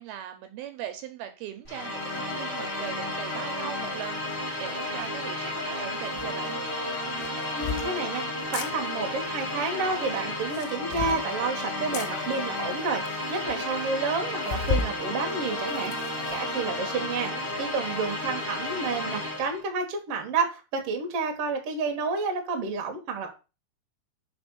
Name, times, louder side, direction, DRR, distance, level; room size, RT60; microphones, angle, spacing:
voice 1, 0.0-6.6 16.9-17.5, right 10 dB, 75° right, 7 dB, 2.5 m, -40 dB
sound 1, 1.6-19.6, left 1 dB, 30° left, 2.1 m, -32 dB
sound 2, 6.2-6.3 7.2-7.9 8.4-8.7 10.4-11.2 11.9-12.1 12.8-12.9 13.1-13.2 13.5-13.6 14.5-15.0 15.4-16.4, left 5 dB, 85° left, 2.7 m, -32 dB
voice 2, 7.5-17.3 17.6-23.3, right 4 dB, 55° right, 3 dB, 1.7 m, -30 dB
5.3 x 4.7 x 6.2 m, 0.31 s
omnidirectional pair, 4.7 m